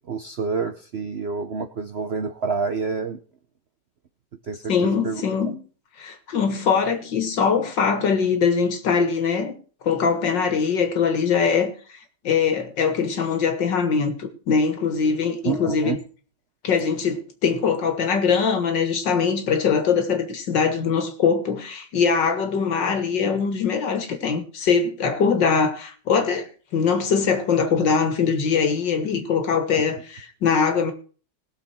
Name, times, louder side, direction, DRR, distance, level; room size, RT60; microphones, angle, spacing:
voice 1, 0.1-3.2 4.4-5.2 15.4-16.0 29.7-29.8, right 5 dB, 60° right, 0.7 m, -28 dB
voice 2, 4.7-5.6 6.0-9.5 9.8-11.7 12.2-16.0 16.6-26.5 26.7-30.9, left 6 dB, 75° left, 2.4 m, -22 dB
20.5 x 6.9 x 4.4 m
omnidirectional pair, 2.0 m